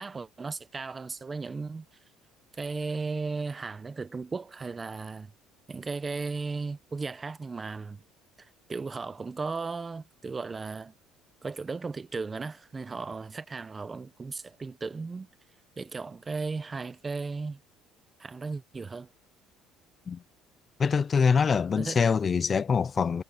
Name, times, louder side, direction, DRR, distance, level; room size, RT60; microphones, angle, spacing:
voice 1, 0.0-1.8 2.5-5.3 5.7-8.0 8.4-10.9 11.4-15.3 15.8-17.6 18.2-19.1 21.8-22.0, right 4 dB, 20° right, 0.9 m, -36 dB
voice 2, 20.8-23.2, left 6 dB, 30° left, 0.7 m, -24 dB
cardioid pair, 125°, 0 cm